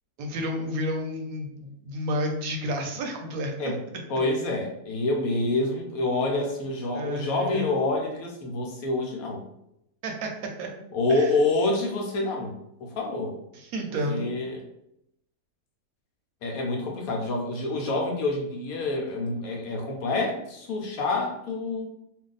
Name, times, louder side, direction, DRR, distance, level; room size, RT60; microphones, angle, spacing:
voice 1, 0.2-3.5 6.9-7.7 10.0-10.7 11.1-11.3 13.5-14.3, equal, 70° right, 3 dB, 1.0 m, -31 dB
voice 2, 4.1-9.4 10.9-13.4 14.1-14.6 16.4-21.9, left 2 dB, 70° left, 1 dB, 1.0 m, -27 dB
2.6 x 2.3 x 3.8 m, 0.81 s
omnidirectional pair, 1.7 m